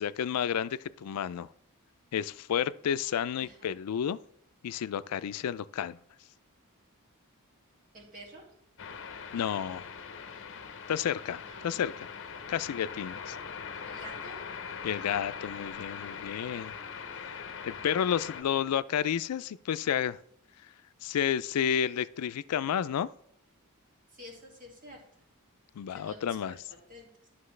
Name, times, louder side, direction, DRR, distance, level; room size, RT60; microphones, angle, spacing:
voice 1, 0.0-1.5 2.1-4.2 4.6-6.0 9.3-9.9 10.9-12.1 12.5-13.4 14.8-16.7 17.2-20.2 21.0-23.1 25.8-26.5, left 8 dB, 90° left, 0.4 m, -31 dB
voice 2, 3.4-3.8 7.9-8.5 11.4-12.1 13.8-14.4 18.5-18.8 24.1-25.0 25.9-27.1, equal, 40° right, 2.2 m, -50 dB
sound 1, 8.8-18.4, left 6 dB, 60° left, 0.8 m, -41 dB
11.5 x 5.8 x 3.2 m
head